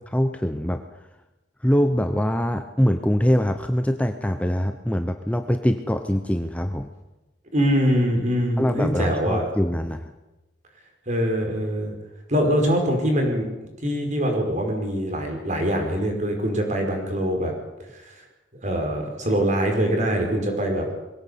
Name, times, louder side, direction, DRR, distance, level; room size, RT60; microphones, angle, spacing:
voice 1, 0.1-0.8 1.6-6.9 8.6-10.1, equal, 5° left, 7 dB, 0.9 m, -23 dB
voice 2, 7.5-9.5 11.1-11.9 12.3-13.5 13.8-17.5 18.6-20.9, equal, 40° right, 2 dB, 5.1 m, -23 dB
22.0 x 16.5 x 8.3 m, 1.0 s
head